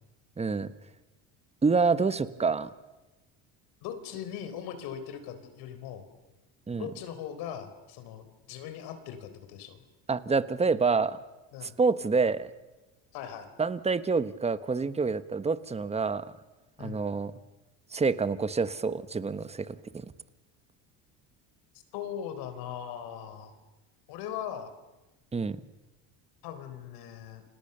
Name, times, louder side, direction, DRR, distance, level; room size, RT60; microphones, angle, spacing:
voice 1, 0.4-0.7 1.6-2.7 6.7-6.9 10.1-11.2 11.6-12.5 13.6-16.3 16.8-17.3 17.9-20.0 25.3-25.6, right 4 dB, 15° right, 13 dB, 1.3 m, -27 dB
voice 2, 3.8-6.1 6.8-9.8 11.5-11.8 13.1-13.5 16.8-17.1 21.9-23.5 24.1-24.7 26.4-27.4, left 9 dB, 75° left, 9 dB, 4.1 m, -39 dB
30.0 x 26.5 x 6.8 m, 1.1 s
cardioid pair, 115°, 39 cm